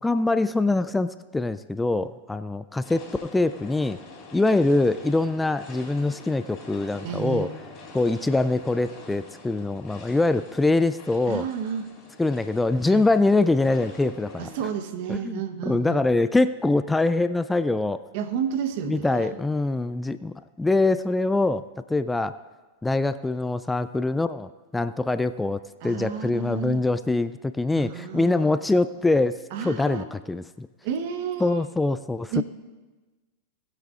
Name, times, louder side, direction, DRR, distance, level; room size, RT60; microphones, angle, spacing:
voice 1, 0.0-4.0 4.3-7.5 7.9-11.5 12.2-14.5 15.1-18.0 18.9-22.4 22.8-30.7 31.4-32.4, left 2 dB, 10° left, 13 dB, 0.3 m, -24 dB
sound 1, 2.8-14.7, left 3 dB, 40° left, 4.0 m, -45 dB
voice 2, 7.0-7.5 11.3-11.9 12.8-13.1 14.4-16.0 18.1-19.4 25.8-26.9 27.7-28.5 29.5-30.0 30.8-31.7 32.3-32.4, right 7 dB, 60° right, 8 dB, 1.1 m, -31 dB
19.5 x 8.2 x 2.5 m, 1.2 s
hypercardioid pair, 95°, 0 cm